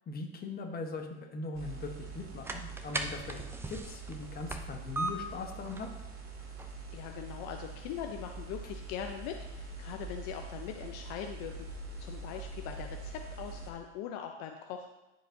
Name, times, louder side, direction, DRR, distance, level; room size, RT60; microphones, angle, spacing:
voice 1, 0.1-1.1 1.3-3.4 3.7-5.9, left 3 dB, 25° left, 3 dB, 1.2 m, -40 dB
sound 1, 1.5-13.7, right 4 dB, 35° right, 2.5 m, -44 dB
sound 2, 2.2-13.5, right 2 dB, 5° right, 0.4 m, -44 dB
voice 2, 6.9-11.7 12.0-14.9, left 9 dB, 55° left, 4 dB, 0.7 m, -41 dB
13.0 x 4.9 x 2.7 m, 1.0 s
supercardioid pair, 115°, 36 cm